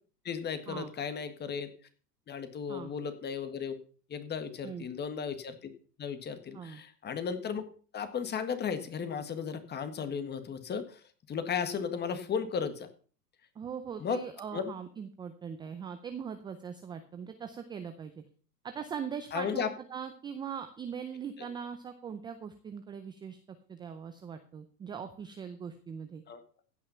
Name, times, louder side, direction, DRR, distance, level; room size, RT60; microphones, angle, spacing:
voice 1, 0.2-1.7 2.3-3.8 4.1-5.7 6.0-7.6 7.9-11.0 11.3-12.9 14.0-14.2 14.5-14.6 19.3-19.7 26.3-26.4, left 6 dB, 20° left, 10 dB, 1.6 m, -35 dB
voice 2, 13.6-18.2 18.6-23.4 23.7-26.2, right 7 dB, 10° right, 8 dB, 0.4 m, -41 dB
15.5 x 5.7 x 5.7 m, 0.41 s
hypercardioid pair, 130°, 49 cm